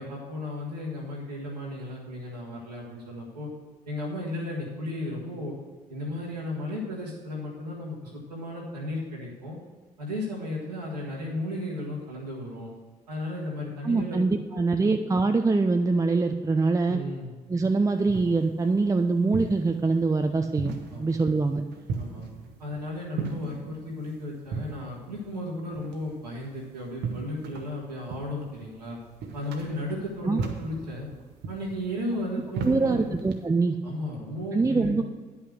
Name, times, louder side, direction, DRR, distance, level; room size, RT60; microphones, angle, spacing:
voice 1, 0.0-3.5 3.8-5.5 5.9-9.6 10.0-12.7 13.1-14.2 14.5-15.0 16.9-17.3 20.9-21.1 22.0-22.2 22.6-29.0 29.3-31.1 31.5-33.2 33.8-35.0, left 1 dB, 85° right, -5 dB, 1.7 m, -34 dB
voice 2, 13.8-17.0 17.5-21.6 30.3-30.4 32.6-33.8 34.5-35.1, right 3 dB, 15° right, 6 dB, 0.6 m, -24 dB
sound 1, 17.6-33.5, right 4 dB, 60° right, 1.1 m, -38 dB
9.9 x 5.7 x 6.4 m, 1.4 s
figure-of-eight pair, 45°, 20 cm